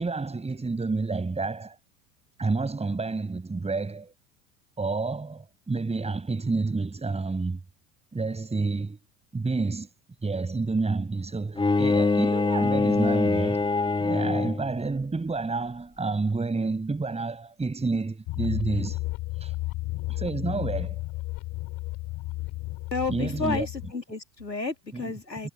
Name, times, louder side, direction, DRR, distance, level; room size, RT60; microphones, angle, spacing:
voice 1, 0.0-1.8 2.4-4.1 4.8-7.6 8.1-9.0 9.3-9.9 10.2-13.7 14.0-19.0 19.4-19.5 20.1-21.0 23.1-23.7 24.9-25.1 25.4-25.5, right 3 dB, 15° right, 7.8 m, -29 dB
Bowed string instrument, 11.5-14.8, left 3 dB, 10° left, 2.8 m, -24 dB
sound 1, 18.3-23.9, left 20 dB, 45° left, 3.0 m, -33 dB
voice 2, 22.9-25.5, left 4 dB, 90° left, 2.6 m, -31 dB
figure-of-eight pair, 80°, 49 cm